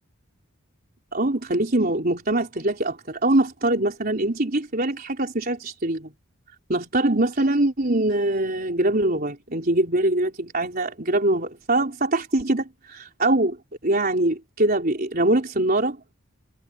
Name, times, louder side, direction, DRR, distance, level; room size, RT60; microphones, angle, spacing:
voice 1, 1.1-6.1 6.7-13.6 13.8-16.0, right 1 dB, 45° right, 4.2 m, -23 dB
head